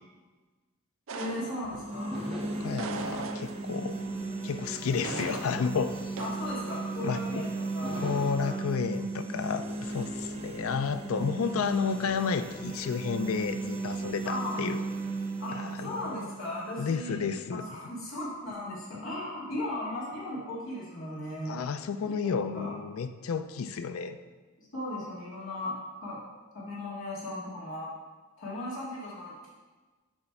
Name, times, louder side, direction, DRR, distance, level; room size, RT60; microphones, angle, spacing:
voice 1, 1.1-2.2 6.2-8.5 14.2-14.6 15.4-17.2 17.5-21.6 22.1-22.8 24.6-26.2 26.5-27.9 28.4-29.3, left 1 dB, 65° left, -8 dB, 2.1 m, -37 dB
sound 1, 1.1-2.0 2.8-3.8 5.0-5.8 6.2-6.5, right 5 dB, 70° right, 0.5 m, -39 dB
sound 2, 1.6-17.6, right 3 dB, 30° right, 0.9 m, -36 dB
sound 3, 2.1-4.4 5.0-7.2 7.8-8.3, equal, ahead, 1.5 m, -42 dB
voice 2, 2.6-4.0 4.4-6.2 7.0-7.4 7.9-14.8 15.5-16.3 16.8-17.7 21.5-24.2, left 6 dB, 85° left, 11 dB, 0.4 m, -32 dB
8.0 x 3.3 x 5.8 m, 1.3 s
head